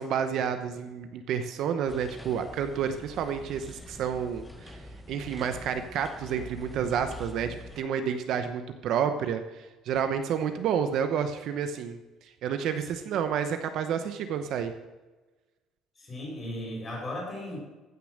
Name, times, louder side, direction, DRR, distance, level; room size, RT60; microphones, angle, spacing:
voice 1, 0.0-4.8 5.1-14.7, right 7 dB, 55° right, 8 dB, 0.8 m, -30 dB
sound 1, 1.9-7.8, left 1 dB, 5° left, 0.8 m, -45 dB
voice 2, 16.0-17.6, left 1 dB, 20° left, -2 dB, 5.0 m, -36 dB
15.0 x 6.8 x 6.5 m, 1.2 s
cardioid pair, 165°, 0 cm